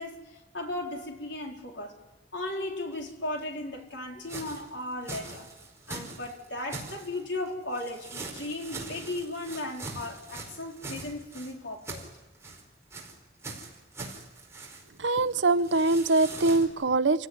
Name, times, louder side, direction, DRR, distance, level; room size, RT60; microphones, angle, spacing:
voice 1, 0.0-1.9 2.3-5.5 5.9-12.1 15.5-15.6, left 2 dB, 80° left, 1 dB, 4.3 m, -36 dB
sound 1, 2.9-3.0 3.4-3.5 4.2-7.3 7.7-11.5 11.8-12.6 12.9-13.1 13.4-15.0 15.3-15.4 15.6-16.7, right 3 dB, 15° right, 4.9 m, -42 dB
voice 2, 15.0-17.3, right 3 dB, 85° right, 14 dB, 0.8 m, -23 dB
28.5 x 17.0 x 9.6 m, 1.1 s
head